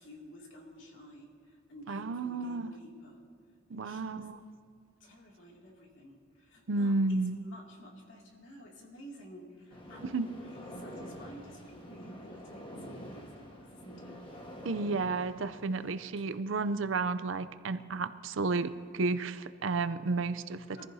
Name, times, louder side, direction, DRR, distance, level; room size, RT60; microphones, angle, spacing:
voice 1, 0.0-3.2 3.7-4.3 5.0-14.2 14.6-14.7 16.2-16.3 20.7-20.9, equal, 70° left, -1 dB, 2.5 m, -52 dB
voice 2, 1.9-2.7 3.7-4.4 6.7-7.3 10.0-10.3 14.6-20.9, right 3 dB, 70° right, 12 dB, 0.5 m, -32 dB
sound 1, 9.7-16.1, equal, 25° left, 1.4 m, -47 dB
23.0 x 14.5 x 2.8 m, 2.3 s
head